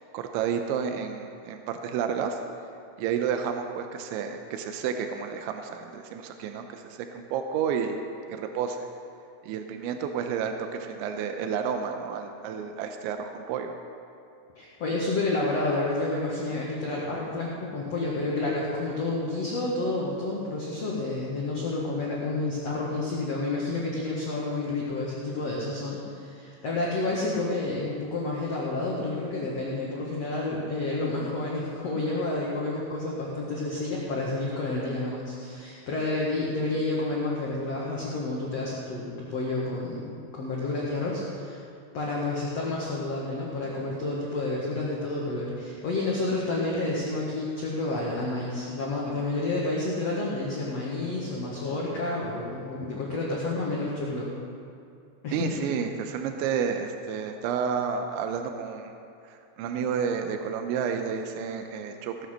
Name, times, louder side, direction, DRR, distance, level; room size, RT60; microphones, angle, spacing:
voice 1, 0.0-2.4 3.0-8.0 8.3-8.9 9.4-13.8 55.3-58.9 59.3-62.3, right 7 dB, 80° right, 5 dB, 2.9 m, -31 dB
voice 2, 14.5-41.6 41.9-54.3 55.2-55.6, left 2 dB, 80° left, -5 dB, 1.4 m, -30 dB
17.0 x 8.0 x 6.5 m, 2.6 s
omnidirectional pair, 5.6 m